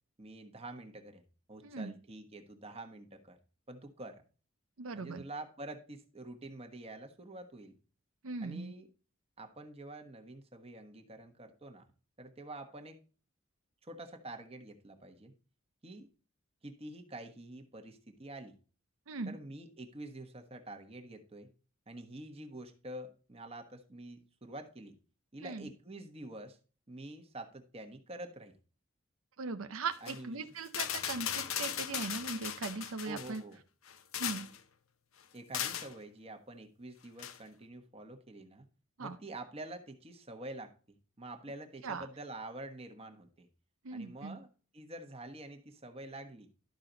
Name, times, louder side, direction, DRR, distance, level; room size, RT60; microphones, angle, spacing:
voice 1, 0.2-1.2 1.5-3.4 3.7-4.2 4.9-7.8 8.4-8.9 9.4-11.8 12.2-13.0 13.8-15.3 15.8-16.1 16.6-18.6 19.3-21.5 21.9-25.0 25.3-26.6 26.9-28.5 30.0-30.6 33.0-33.6 35.3-38.6 39.0-43.5 43.9-44.5 44.7-46.5, right 2 dB, 30° right, 5 dB, 1.3 m, -47 dB
voice 2, 1.6-1.9 4.8-5.2 8.2-8.8 19.1-19.4 25.4-25.7 29.4-33.4 34.2-34.5 39.0-39.2 41.8-42.1 43.8-44.4, right 4 dB, 85° right, 8 dB, 0.7 m, -39 dB
sound 1, 29.9-30.2 30.7-33.4 33.9-34.6 35.5-35.9 37.2-37.4, left 9 dB, 80° left, 0.8 m, -37 dB
12.0 x 5.8 x 3.9 m, 0.36 s
head